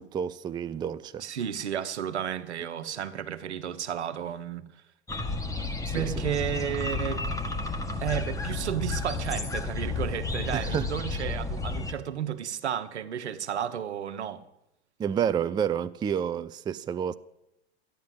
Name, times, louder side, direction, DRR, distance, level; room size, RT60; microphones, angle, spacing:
voice 1, 0.0-1.2 5.6-6.2 10.5-10.9 15.0-17.1, right 8 dB, 15° right, 0.4 m, -30 dB
voice 2, 1.2-4.6 5.9-7.2 8.0-14.4, right 9 dB, 80° right, 1.2 m, -32 dB
sound 1, 5.1-11.9, left 3 dB, 10° left, 1.6 m, -32 dB
13.0 x 10.5 x 7.7 m
hypercardioid pair, 95°, 33 cm